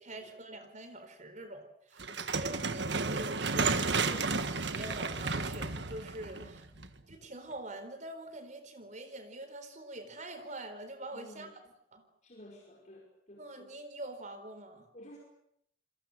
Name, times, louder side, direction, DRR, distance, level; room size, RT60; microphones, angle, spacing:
voice 1, 0.0-6.6 7.1-11.5 11.9-12.0 13.4-14.8, right 1 dB, 40° right, 9 dB, 4.3 m, -45 dB
sound 1, 2.0-7.1, right 4 dB, 65° right, 1.6 m, -32 dB
voice 2, 6.3-7.0 11.1-11.5 12.2-13.7 14.9-15.2, left 1 dB, 40° left, -1 dB, 5.0 m, -54 dB
28.0 x 21.5 x 7.9 m, 0.74 s
head